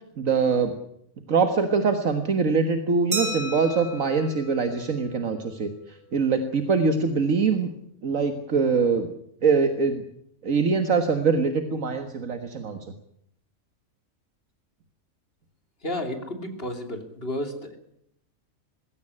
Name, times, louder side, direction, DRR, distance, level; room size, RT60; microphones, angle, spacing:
voice 1, 0.2-0.7 1.3-7.7 8.0-9.1 9.4-10.0 10.4-12.8, right 5 dB, 70° right, 7 dB, 1.9 m, -23 dB
Glass, 3.1-5.6, right 1 dB, 90° right, 5.9 m, -34 dB
voice 2, 15.8-17.7, left 1 dB, 45° left, 6 dB, 3.3 m, -32 dB
21.0 x 16.5 x 9.9 m, 0.73 s
omnidirectional pair, 1.4 m